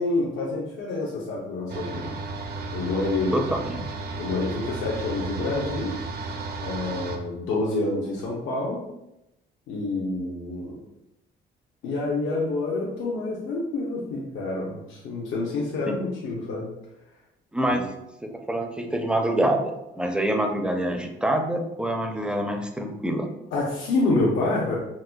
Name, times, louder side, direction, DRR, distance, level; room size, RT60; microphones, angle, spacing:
voice 1, 0.0-2.2 2.7-3.4 4.1-6.0 6.6-8.9 9.7-10.8 11.8-16.7 17.7-17.8 23.5-24.8, left 2 dB, 75° left, -4 dB, 0.7 m, -27 dB
sound 1, 1.7-7.2, right 3 dB, 55° right, 0.5 m, -33 dB
voice 2, 3.3-3.8 15.9-16.0 17.5-17.9 18.2-23.3, right 1 dB, 5° right, 4 dB, 0.4 m, -26 dB
4.1 x 2.4 x 2.2 m, 0.89 s
cardioid pair, 90°, 20 cm